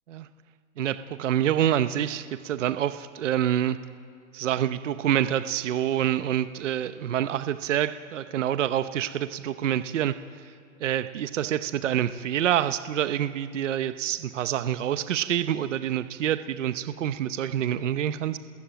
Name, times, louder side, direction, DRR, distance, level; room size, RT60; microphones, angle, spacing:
voice 1, 0.8-3.8 4.3-10.1 10.8-18.4, right 11 dB, 60° right, 11 dB, 1.0 m, -27 dB
27.5 x 20.0 x 9.1 m, 2.4 s
hypercardioid pair, 170°, 41 cm